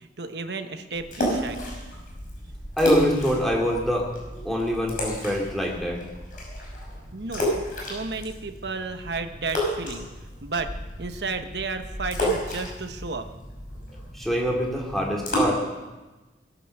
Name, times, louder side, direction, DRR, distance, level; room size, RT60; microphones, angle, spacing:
voice 1, 0.0-1.6 7.1-13.2, right 3 dB, 70° right, 7 dB, 1.1 m, -33 dB
sound 1, 0.9-15.4, equal, 50° left, 5.7 m, -32 dB
voice 2, 2.8-4.1 4.4-6.0 14.1-15.6, equal, ahead, -1 dB, 2.7 m, -24 dB
19.5 x 9.5 x 6.7 m, 1.2 s
head